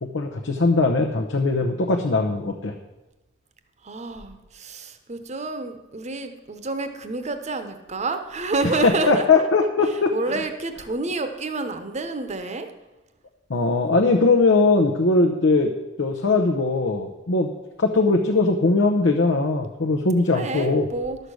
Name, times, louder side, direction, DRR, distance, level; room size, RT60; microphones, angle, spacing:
voice 1, 0.0-2.7 8.6-10.1 13.5-15.7 16.0-17.5 17.8-20.9, left 3 dB, 70° left, 3 dB, 0.8 m, -20 dB
voice 2, 3.8-9.5 10.1-12.7 20.3-21.2, right 3 dB, 35° right, 8 dB, 0.9 m, -29 dB
11.5 x 6.6 x 6.3 m, 1.1 s
head